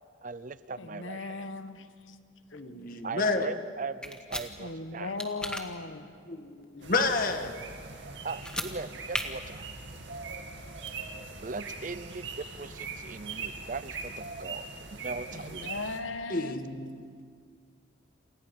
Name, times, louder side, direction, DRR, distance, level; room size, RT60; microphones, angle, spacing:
voice 1, 0.2-1.5 3.0-5.1 8.2-9.6 11.4-15.9, right 4 dB, 40° right, 0.6 m, -39 dB
voice 2, 0.8-2.2 2.5-2.6 4.6-6.2 15.3-16.6 17.1-17.2, left 3 dB, 75° left, 1.2 m, -38 dB
voice 3, 2.5-3.5 6.3-7.5 16.3-16.9, left 3 dB, 45° left, 1.7 m, -30 dB
sound 1, 4.0-4.5 5.2-5.6 8.3-8.7 9.1-9.2, left 1 dB, 5° left, 1.4 m, -34 dB
sound 2, 6.8-16.0, right 4 dB, 65° right, 2.4 m, -41 dB
29.0 x 27.5 x 5.4 m
head